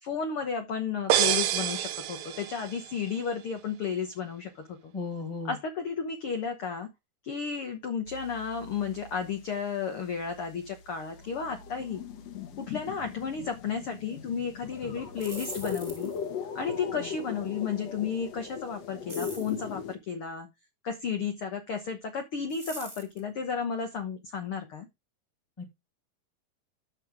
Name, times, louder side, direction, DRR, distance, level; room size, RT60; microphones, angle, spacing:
voice 1, 0.0-4.9 5.5-6.9 7.2-12.0 12.6-16.1 16.5-20.5 20.8-24.9, left 6 dB, 75° left, 1.2 m, -33 dB
sound 1, 1.1-2.9, right 12 dB, 80° right, 1.6 m, -27 dB
voice 2, 4.9-5.5 25.6-25.7, left 4 dB, 25° left, 0.7 m, -35 dB
sound 2, 8.1-9.6 9.9-20.0, left 6 dB, 55° left, 2.0 m, -40 dB
sound 3, 15.0-16.3 19.1-19.6 22.5-23.2, right 1 dB, 10° right, 1.0 m, -43 dB
13.0 x 5.7 x 3.5 m
omnidirectional pair, 4.4 m